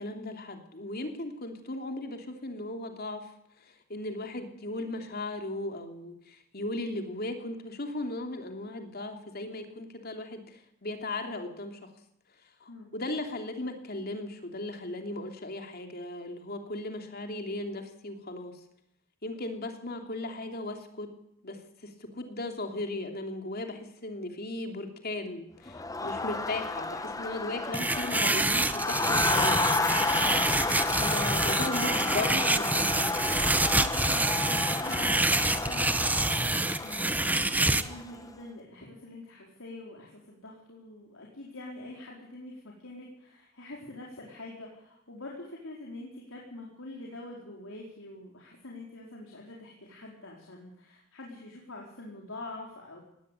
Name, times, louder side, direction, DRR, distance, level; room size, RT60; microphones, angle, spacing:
voice 1, 0.0-3.3 3.9-11.9 12.6-18.6 19.2-21.1 21.4-29.6 31.0-33.1, left 2 dB, 50° left, 5 dB, 3.0 m, -37 dB
Crowd, 25.7-38.2, left 3 dB, 15° left, 1.1 m, -31 dB
sound 1, 27.7-37.8, right 2 dB, 10° right, 0.9 m, -27 dB
voice 2, 30.3-30.8 33.7-53.0, left 2 dB, 85° left, -2 dB, 4.4 m, -45 dB
19.0 x 17.5 x 8.4 m, 0.79 s
head